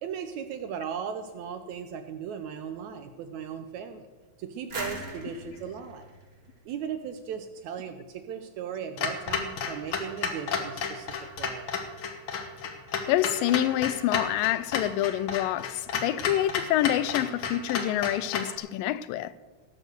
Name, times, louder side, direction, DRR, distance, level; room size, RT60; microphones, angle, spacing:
voice 1, 0.0-4.1 4.4-6.1 6.7-11.7, right 7 dB, 75° right, 1.8 m, -37 dB
sound 1, 4.7-7.4, right 1 dB, 30° right, 1.0 m, -40 dB
Clock, 9.0-18.6, left 6 dB, 60° left, 1.5 m, -32 dB
voice 2, 13.1-19.3, left 13 dB, 85° left, 2.3 m, -27 dB
17.0 x 6.4 x 6.7 m
omnidirectional pair, 3.9 m